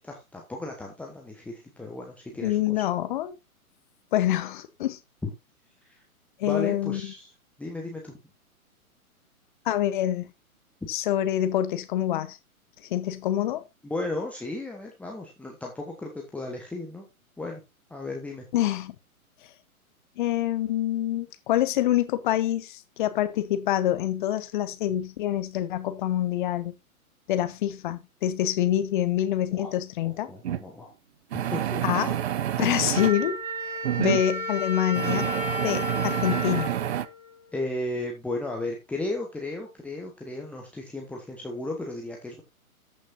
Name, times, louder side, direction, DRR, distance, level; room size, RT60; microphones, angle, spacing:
voice 1, 0.0-2.6 5.2-5.3 6.4-7.3 7.6-8.1 13.8-17.1 17.4-17.6 17.9-18.4 29.5-29.7 30.3-30.9 31.5-32.1 37.5-42.4, left 2 dB, 5° left, 1.2 m, -34 dB
voice 2, 2.4-3.4 4.1-5.0 6.4-7.1 9.6-10.3 10.9-12.4 12.9-13.6 18.5-18.9 20.2-26.7 27.3-30.3 31.8-32.1 32.6-33.4 34.0-35.3 35.6-36.7, left 12 dB, 35° left, 0.9 m, -26 dB
sound 1, 30.4-30.6 31.3-33.1 33.8-34.2 35.0-37.1, right 11 dB, 45° right, 0.8 m, -28 dB
Wind instrument woodwind instrument, 32.9-37.7, left 1 dB, 70° right, 3.4 m, -33 dB
14.0 x 6.4 x 2.7 m
figure-of-eight pair, 120°, 43 cm